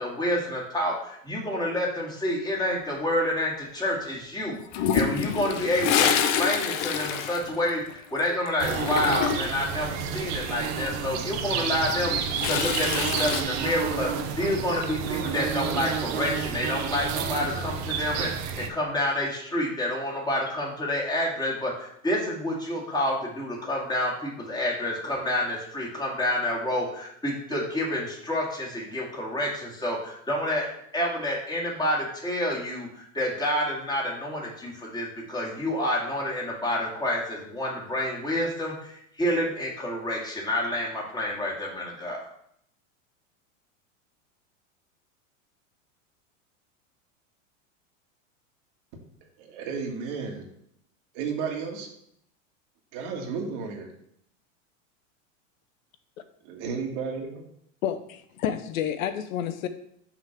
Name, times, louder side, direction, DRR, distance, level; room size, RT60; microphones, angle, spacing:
voice 1, 0.0-30.7 30.9-42.2, left 1 dB, 10° left, 2.0 m, -28 dB
Toilet flush, 4.7-8.2 8.5-9.6 11.7-13.4, left 8 dB, 45° left, 0.8 m, -27 dB
sound 1, 8.6-18.7, right 7 dB, 40° right, 0.8 m, -30 dB
voice 2, 49.4-50.5 51.1-51.9 52.9-53.9 56.5-57.4, right 5 dB, 60° right, 1.7 m, -33 dB
voice 3, 57.8-59.7, left 9 dB, 80° left, 0.8 m, -29 dB
6.0 x 3.8 x 5.8 m
hypercardioid pair, 115°, 40 cm